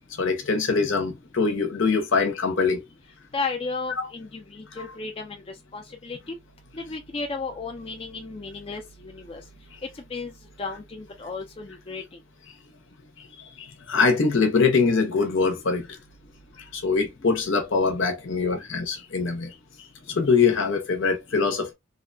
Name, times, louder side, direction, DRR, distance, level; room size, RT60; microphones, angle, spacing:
voice 1, 0.2-2.8 4.0-4.1 13.9-15.8 16.7-19.5 20.1-21.7, left 4 dB, 70° left, 0.7 m, -23 dB
voice 2, 3.3-6.4 6.7-9.4 10.1-12.2, left 4 dB, 25° left, 0.4 m, -34 dB
2.8 x 2.1 x 2.6 m
head